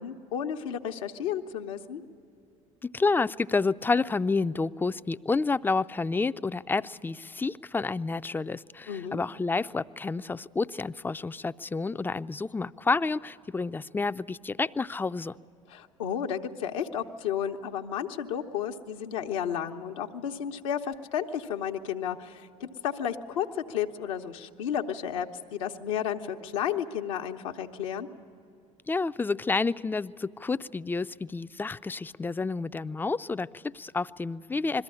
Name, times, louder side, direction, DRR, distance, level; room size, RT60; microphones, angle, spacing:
voice 1, 0.0-2.0 8.9-9.2 15.7-28.1, left 9 dB, 80° left, 4 dB, 0.9 m, -32 dB
voice 2, 2.8-15.3 28.9-34.8, left 4 dB, 10° left, 13 dB, 0.4 m, -29 dB
22.0 x 14.0 x 9.8 m, 2.7 s
hypercardioid pair, 65°, 17 cm